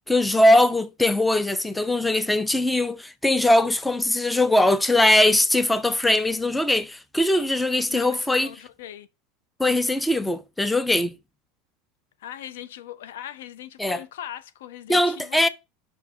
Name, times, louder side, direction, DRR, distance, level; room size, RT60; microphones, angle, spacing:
voice 1, 0.1-8.5 9.6-11.1 13.8-14.0 14.9-15.5, left 1 dB, 5° left, 0.6 m, -21 dB
voice 2, 7.9-9.1 12.2-15.5, left 11 dB, 60° left, 0.6 m, -40 dB
5.7 x 4.8 x 6.6 m
figure-of-eight pair, 80°, 0 cm